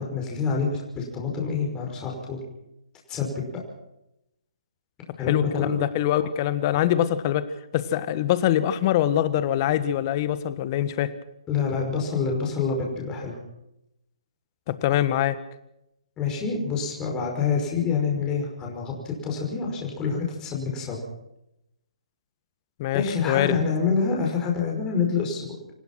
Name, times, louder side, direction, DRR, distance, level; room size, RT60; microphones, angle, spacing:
voice 1, 0.0-2.4 3.1-3.3 5.2-5.9 11.5-13.4 16.2-21.0 22.9-25.7, left 5 dB, 20° left, 0 dB, 5.4 m, -27 dB
voice 2, 5.3-7.4 7.7-11.1 14.7-15.4 22.8-23.6, left 12 dB, 35° left, 13 dB, 1.5 m, -24 dB
27.5 x 16.0 x 6.0 m, 0.85 s
hypercardioid pair, 140°, 4 cm